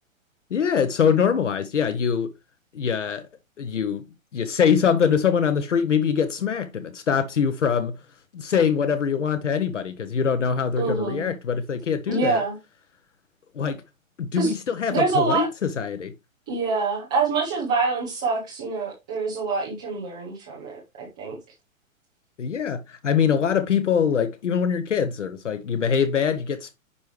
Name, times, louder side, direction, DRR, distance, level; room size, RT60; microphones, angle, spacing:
voice 1, 0.5-2.3 2.7-3.2 3.6-4.0 4.3-8.0 8.3-12.4 13.5-13.8 14.2-16.1 22.4-26.7, left 7 dB, 60° left, 1.1 m, -23 dB
voice 2, 10.8-11.3 12.1-12.6 14.4-14.5 14.9-15.5 16.5-21.4, right 4 dB, 5° right, 0.4 m, -25 dB
10.0 x 4.6 x 3.2 m
figure-of-eight pair, 120°, 41 cm